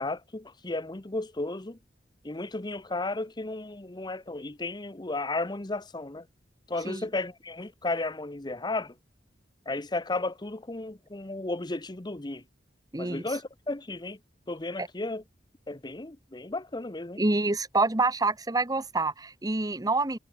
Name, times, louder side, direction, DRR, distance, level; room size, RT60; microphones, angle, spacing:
voice 1, 0.0-1.8 2.2-6.3 6.7-8.9 9.7-12.4 13.0-14.2 14.5-15.2 15.7-17.2, left 2 dB, 25° left, 0.9 m, -34 dB
voice 2, 12.9-13.2 14.8-14.9 17.2-20.2, right 3 dB, 20° right, 1.1 m, -27 dB
head